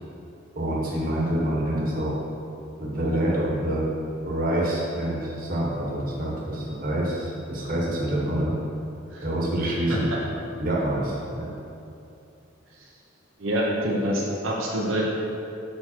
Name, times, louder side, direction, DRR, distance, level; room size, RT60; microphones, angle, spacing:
voice 1, 0.5-2.1 2.8-3.9 4.2-8.5 9.2-10.2 10.6-11.5, right 1 dB, 45° right, -5 dB, 1.5 m, -26 dB
voice 2, 13.4-15.1, equal, 85° right, -4 dB, 1.1 m, -26 dB
6.8 x 5.3 x 4.5 m, 2.7 s
head